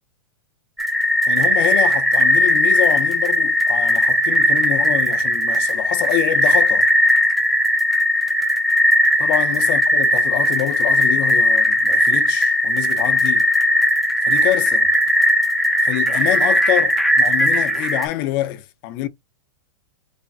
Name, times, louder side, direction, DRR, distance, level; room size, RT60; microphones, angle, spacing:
sound 1, 0.8-18.1, left 1 dB, ahead, 0.3 m, -18 dB
voice 1, 1.3-6.9 9.2-13.4 14.3-14.9 15.8-19.1, left 13 dB, 40° left, 0.8 m, -26 dB
3.4 x 2.2 x 4.0 m
supercardioid pair, 155°, 18 cm